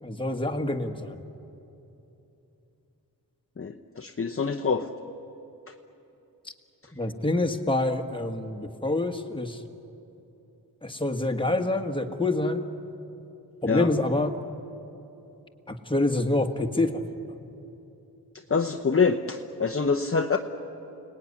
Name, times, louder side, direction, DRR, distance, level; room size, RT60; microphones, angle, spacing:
voice 1, 0.0-1.2 6.9-9.6 10.8-12.7 13.6-14.3 15.7-17.0, left 2 dB, 15° left, 4 dB, 1.7 m, -26 dB
voice 2, 3.6-4.9 13.7-13.9 18.5-20.4, left 5 dB, 35° left, 3 dB, 0.9 m, -25 dB
29.5 x 19.5 x 9.8 m, 2.9 s
wide cardioid pair, 110°, 38 cm